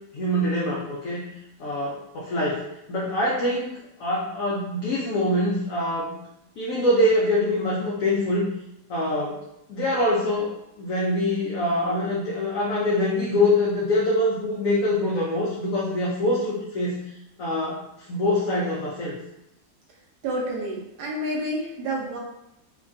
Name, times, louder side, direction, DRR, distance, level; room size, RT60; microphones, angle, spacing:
voice 1, 0.1-1.3 1.6-6.2 6.6-8.5 8.9-9.4 9.7-17.0 17.4-19.2, left 1 dB, 85° left, -5 dB, 0.7 m, -24 dB
voice 2, 20.2-22.2, right 1 dB, 75° right, -3 dB, 1.0 m, -29 dB
3.2 x 2.2 x 2.5 m, 0.85 s
omnidirectional pair, 2.1 m